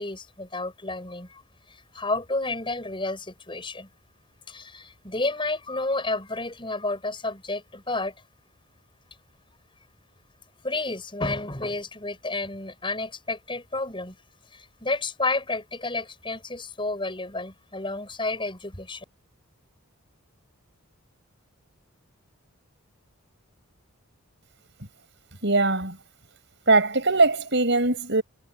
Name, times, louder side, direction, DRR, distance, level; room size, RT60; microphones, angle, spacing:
voice 1, 0.0-1.4 1.7-3.9 4.5-8.1 10.6-14.2 14.5-19.0, left 2 dB, 20° left, 7.9 m, -31 dB
voice 2, 25.4-26.0 26.7-28.2, right 3 dB, 55° right, 6.8 m, -21 dB
head